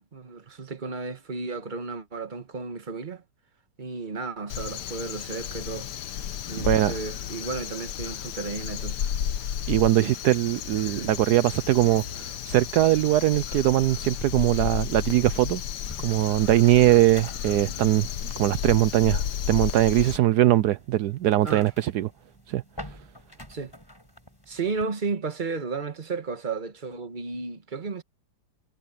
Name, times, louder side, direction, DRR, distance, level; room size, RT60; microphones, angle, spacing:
voice 1, 0.0-3.2 3.8-5.9 6.5-9.1 10.0-10.1 10.8-11.1 21.4-21.7 23.5-23.7 24.5-28.0, right 4 dB, 30° right, 1.6 m, -33 dB
Crow, 4.5-20.2, left 9 dB, 85° left, 1.5 m, -33 dB
voice 2, 6.6-6.9 9.7-15.6 16.0-18.1 18.4-22.1 22.5-22.6, right 14 dB, 75° right, 1.2 m, -21 dB
sound 1, 15.6-24.8, left 1 dB, 15° left, 5.8 m, -48 dB
omnidirectional pair, 1.8 m